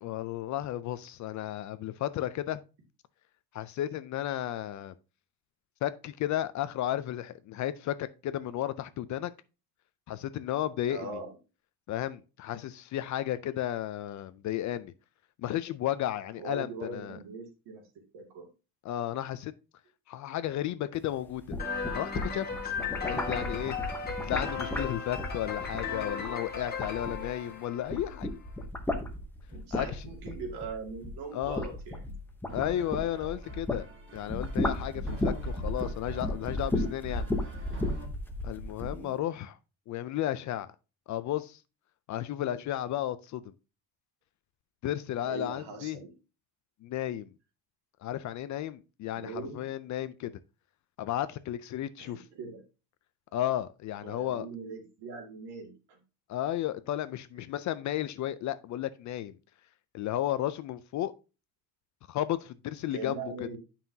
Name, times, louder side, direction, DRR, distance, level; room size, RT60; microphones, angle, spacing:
voice 1, 0.0-2.6 3.5-4.9 5.8-9.3 10.1-11.2 11.9-14.9 15.4-17.2 18.8-19.5 20.1-21.6 21.9-22.5 23.0-23.7 24.2-28.3 29.7-30.0 31.3-31.7 32.5-33.9 34.1-37.3 38.4-39.6 39.9-40.7 41.1-41.6 42.1-43.5 44.8-46.0 46.8-47.3 48.0-50.3 51.0-52.3 53.3-54.5 56.3-59.4 59.9-61.1 62.1-63.5, left 12 dB, 45° left, 0.4 m, -33 dB
voice 2, 10.9-11.3 16.4-17.8 18.1-18.5 29.5-32.1 38.9-39.2 45.2-46.1 49.2-49.7 52.0-52.6 54.0-56.0 62.9-63.6, right 4 dB, 65° right, 2.3 m, -41 dB
sound 1, 21.3-27.5 27.8-33.9 34.2-39.0, left 1 dB, 5° left, 0.7 m, -34 dB
sound 2, 21.6-28.2, left 5 dB, 20° left, 1.5 m, -36 dB
sound 3, 32.5-38.1, right 2 dB, 25° right, 1.3 m, -45 dB
9.3 x 5.7 x 2.7 m
cardioid pair, 170°, 43 cm